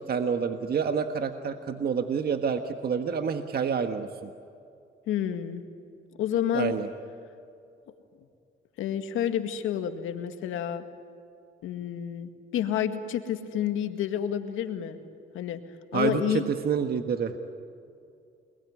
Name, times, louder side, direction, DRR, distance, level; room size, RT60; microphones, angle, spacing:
voice 1, 0.1-4.3 6.5-6.9 15.9-17.4, right 6 dB, 50° right, 7 dB, 1.6 m, -28 dB
voice 2, 5.1-5.6 6.2-6.7 8.8-10.8 11.6-15.0 15.3-15.6 15.9-16.4, left 9 dB, 90° left, 7 dB, 2.0 m, -29 dB
28.5 x 21.5 x 9.8 m, 2.5 s
cardioid pair, 90°, 20 cm